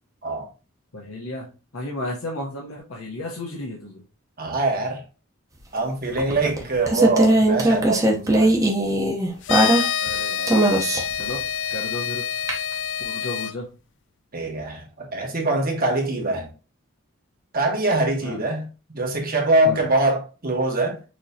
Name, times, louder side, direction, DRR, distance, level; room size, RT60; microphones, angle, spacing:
voice 1, 0.9-4.0 6.3-6.5 6.8-6.9 10.0-10.8 11.2-11.4 11.7-12.2 12.5-12.6 13.0-13.7 18.2-18.4 19.6-19.9, left 1 dB, 70° left, 1.0 m, -33 dB
voice 2, 4.4-5.0 5.7-8.5 14.3-16.5 17.5-21.0, right 2 dB, 40° right, 1.3 m, -23 dB
sound 1, 6.2-10.1 10.5-11.2 12.5-12.6, right 1 dB, 15° right, 0.8 m, -19 dB
sound 2, 9.4-13.5, left 8 dB, 55° left, 0.3 m, -27 dB
6.2 x 3.0 x 2.8 m
head